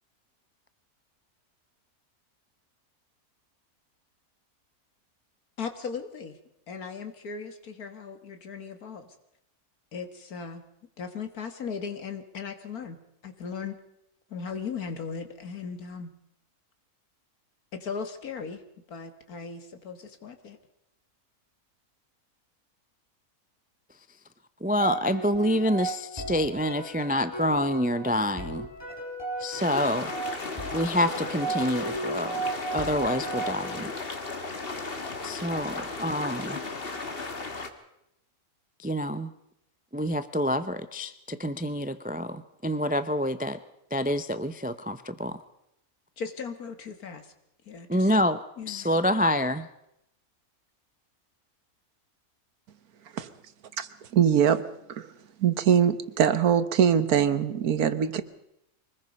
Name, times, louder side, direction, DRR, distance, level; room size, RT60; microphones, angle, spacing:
voice 1, 5.6-6.4 6.7-9.2 9.9-10.6 11.0-13.8 14.3-16.1 17.7-18.6 18.9-20.6 46.2-47.3 47.6-48.1 48.6-48.9, left 5 dB, 75° left, 8 dB, 2.2 m, -37 dB
voice 2, 24.6-28.7 29.4-30.1 30.7-32.4 32.7-33.9 35.2-36.6 38.8-39.3 39.9-43.6 43.9-45.4 47.9-49.7, equal, 15° right, 12 dB, 0.3 m, -27 dB
sound 1, 24.8-34.1, right 3 dB, 15° left, 4.2 m, -35 dB
sound 2, 29.6-37.7, left 3 dB, 40° left, 1.8 m, -35 dB
voice 3, 53.8-54.6 54.9-55.1 55.4-58.2, right 8 dB, 75° right, 12 dB, 1.6 m, -23 dB
24.0 x 20.0 x 5.4 m, 0.82 s
omnidirectional pair, 1.6 m